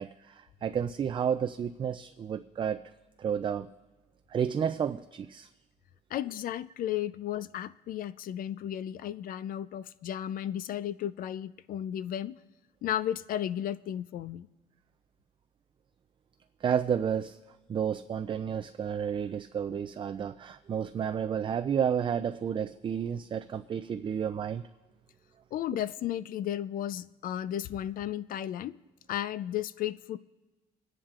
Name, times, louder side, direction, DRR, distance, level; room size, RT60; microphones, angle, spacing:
voice 1, 0.0-2.8 3.2-3.7 4.3-5.5 16.6-17.4 17.7-24.6, right 8 dB, 30° right, 9 dB, 0.4 m, -31 dB
voice 2, 6.1-12.4 12.8-14.5 25.5-28.8 29.1-30.2, left 11 dB, 55° left, 16 dB, 0.4 m, -34 dB
27.0 x 10.0 x 2.4 m, 1.2 s
cardioid pair, 110°, 17 cm